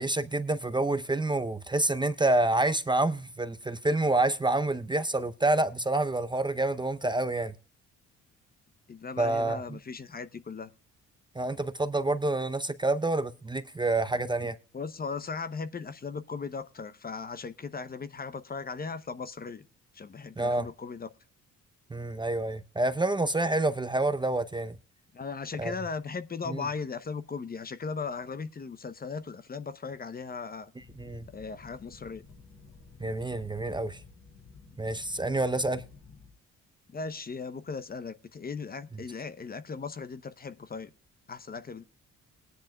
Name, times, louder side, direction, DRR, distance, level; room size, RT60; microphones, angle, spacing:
voice 1, 0.0-7.5 9.2-9.6 11.4-14.5 20.4-20.7 21.9-24.8 25.6-25.7 26.5-26.6 31.0-31.3 33.0-34.0 34.8-35.8, right 2 dB, 15° right, 0.6 m, -28 dB
voice 2, 8.9-10.7 14.7-19.6 19.9-21.1 25.1-30.7 31.3-32.2 36.9-40.9 41.3-41.8, left 5 dB, 30° left, 0.8 m, -37 dB
sound 1, 30.8-36.3, left 4 dB, 70° left, 5.4 m, -52 dB
19.5 x 10.5 x 2.3 m
cardioid pair, 90°, 30 cm